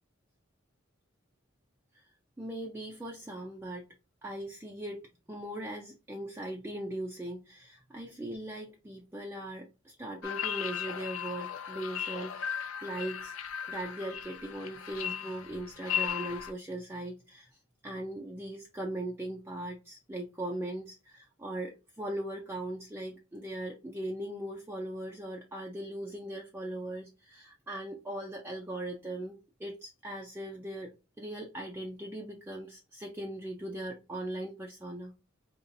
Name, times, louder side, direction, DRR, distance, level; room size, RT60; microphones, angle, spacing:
voice 1, 2.4-3.9 4.2-5.0 5.3-13.3 13.7-17.5 17.8-30.9 31.2-35.1, right 1 dB, 10° right, 0.5 m, -39 dB
sound 1, 10.2-16.5, left 9 dB, 85° left, 0.5 m, -36 dB
4.0 x 2.9 x 2.6 m
head